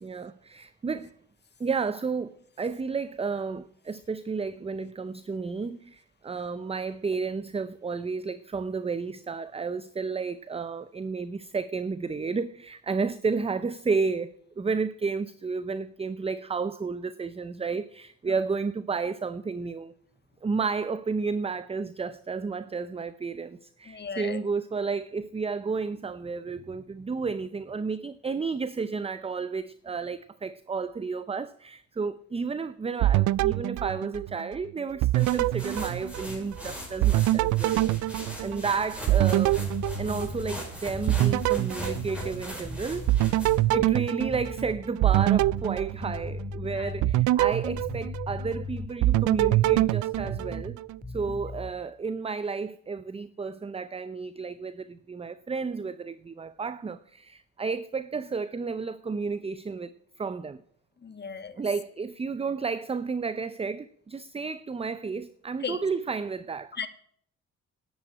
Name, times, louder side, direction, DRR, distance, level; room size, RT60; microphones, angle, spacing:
voice 1, 0.0-1.1 1.6-19.9 20.4-39.6 40.0-43.1 43.7-50.8 51.1-60.6 61.6-66.7, right 4 dB, 20° right, 0.6 m, -32 dB
voice 2, 23.9-24.4 46.7-46.9 61.0-61.6 65.6-65.8 66.7-66.9, left 6 dB, 35° left, 1.7 m, -36 dB
sound 1, 33.0-34.6 35.0-36.6 37.0-40.7 41.1-42.7 43.1-46.5 47.0-48.6 49.0-51.0, right 15 dB, 75° right, 0.4 m, -25 dB
sound 2, 35.1-43.7, equal, 5° right, 5.8 m, -41 dB
sound 3, 39.0-43.9 44.3-44.9 45.2-49.9 50.2-50.7 51.0-51.7, left 3 dB, 10° left, 1.5 m, -38 dB
10.5 x 10.5 x 8.7 m
cardioid pair, 90°, 30 cm